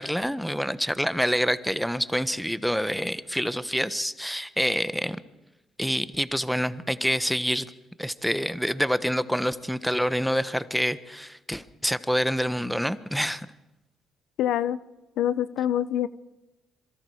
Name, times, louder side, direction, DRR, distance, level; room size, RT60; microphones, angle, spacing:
voice 1, 0.0-5.2 5.8-7.7 8.0-13.5, equal, ahead, 13 dB, 1.2 m, -27 dB
voice 2, 14.4-14.8 15.2-16.1, left 11 dB, 80° left, 16 dB, 0.7 m, -25 dB
26.5 x 23.5 x 5.0 m, 1.0 s
supercardioid pair, 70°, 0 cm